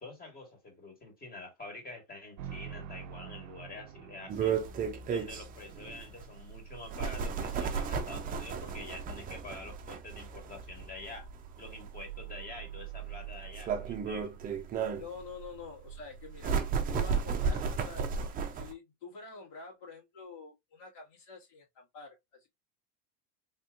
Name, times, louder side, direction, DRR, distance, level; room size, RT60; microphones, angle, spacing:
voice 1, 0.0-4.6 5.1-11.3 11.6-14.3, left 2 dB, 20° left, 1.5 m, -47 dB
sound 1, 2.4-6.5, right 8 dB, 80° right, 0.6 m, -47 dB
sound 2, 4.3-18.7, right 6 dB, 20° right, 0.4 m, -34 dB
voice 2, 15.0-18.1 18.5-22.5, left 5 dB, 75° left, 2.2 m, -47 dB
3.5 x 2.7 x 2.4 m
supercardioid pair, 125°, 44 cm